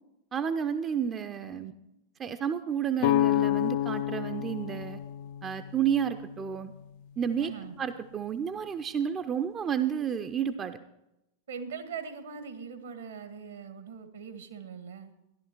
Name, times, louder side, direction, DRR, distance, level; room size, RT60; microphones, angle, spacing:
voice 1, 0.3-1.7 2.2-5.0 5.4-6.7 7.2-7.5 7.8-10.8, right 8 dB, 25° right, 9 dB, 0.6 m, -31 dB
sound 1, 3.0-6.8, left 13 dB, 50° left, 0.4 m, -29 dB
voice 2, 7.4-7.7 11.5-15.1, right 6 dB, 65° right, 8 dB, 1.4 m, -41 dB
14.0 x 11.0 x 4.5 m, 0.89 s
figure-of-eight pair, 90°, 0 cm